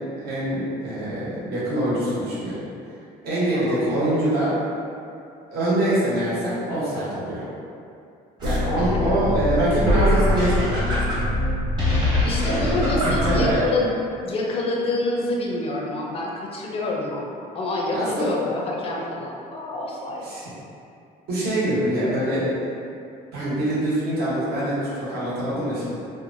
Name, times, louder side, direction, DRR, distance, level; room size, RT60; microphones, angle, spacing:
voice 1, 0.0-2.6 3.2-4.5 5.5-7.4 8.4-11.1 12.5-13.6 17.9-18.3 20.2-20.5 21.3-22.5 23.3-25.9, right 1 dB, 70° right, -9 dB, 1.0 m, -24 dB
sound 1, 8.4-13.6, left 1 dB, 25° right, 0.9 m, -23 dB
voice 2, 8.8-9.2 12.2-13.9 14.2-20.3, left 2 dB, 35° left, -2 dB, 0.4 m, -27 dB
2.9 x 2.1 x 2.6 m, 2.5 s
cardioid pair, 110°, 17 cm